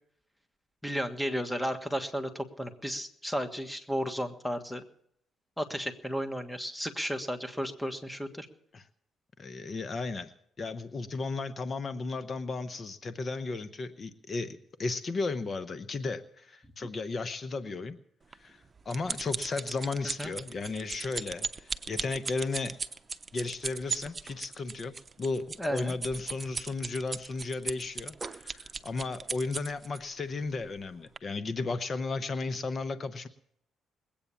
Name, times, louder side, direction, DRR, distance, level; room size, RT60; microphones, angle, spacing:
voice 1, 0.8-4.8 5.6-8.5 20.2-20.3 25.6-25.9, equal, ahead, 6 dB, 1.5 m, -33 dB
voice 2, 9.4-10.3 10.6-18.0 18.4-22.7 23.3-33.3, left 3 dB, 40° left, 11 dB, 0.9 m, -34 dB
sound 1, 18.3-30.0 30.6-30.8 31.2-31.3, right 4 dB, 30° right, 0.9 m, -37 dB
21.0 x 8.7 x 7.0 m, 0.72 s
cardioid pair, 90°, 0 cm